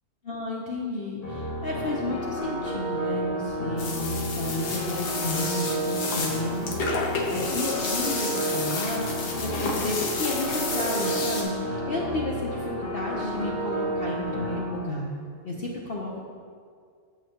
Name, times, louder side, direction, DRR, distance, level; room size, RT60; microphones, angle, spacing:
voice 1, 0.2-9.1 9.4-15.1 15.4-16.3, left 2 dB, 50° left, -3 dB, 0.8 m, -32 dB
sound 1, 1.2-14.6, right 1 dB, 25° left, 1.3 m, -31 dB
sound 2, 3.8-11.4, left 3 dB, 90° left, 1.5 m, -31 dB
8.9 x 6.9 x 2.9 m, 2.2 s
omnidirectional pair, 1.7 m